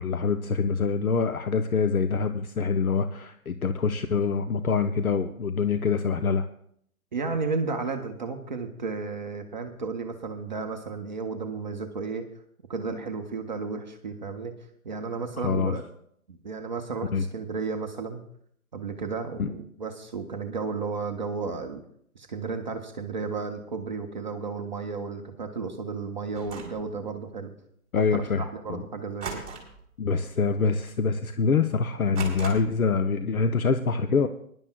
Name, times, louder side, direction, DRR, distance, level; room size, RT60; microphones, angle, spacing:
voice 1, 0.0-6.5 15.4-15.8 17.1-17.2 19.4-19.5 27.9-28.8 30.0-34.3, left 5 dB, 70° left, 9 dB, 0.8 m, -25 dB
voice 2, 7.1-12.2 12.7-14.5 14.8-15.8 16.3-18.2 18.7-21.8 22.1-27.5 28.0-29.4, right 4 dB, 30° right, 4 dB, 0.7 m, -33 dB
sound 1, 26.3-26.8 29.2-29.9 30.2-30.5 30.9-31.0 32.1-32.9, right 5 dB, 10° right, 3.0 m, -38 dB
22.0 x 11.0 x 2.3 m, 0.68 s
figure-of-eight pair, 140°, 44 cm